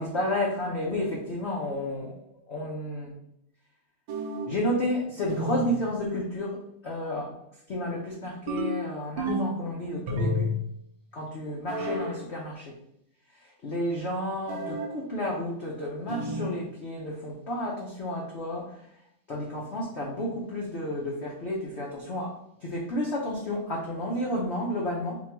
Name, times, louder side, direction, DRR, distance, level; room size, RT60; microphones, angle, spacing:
voice 1, 0.0-2.1 2.5-3.1 4.5-7.3 7.7-10.5 11.1-12.8 13.3-18.9 19.3-22.3 22.6-25.2, left 1 dB, 80° left, -3 dB, 0.6 m, -31 dB
sound 1, 4.1-4.6 5.3-5.8 8.5-9.7 10.1-10.7 11.7-12.2 14.5-15.0 16.1-16.6, left 1 dB, 80° right, 1.4 m, -31 dB
4.4 x 2.3 x 4.4 m, 0.75 s
omnidirectional pair, 2.3 m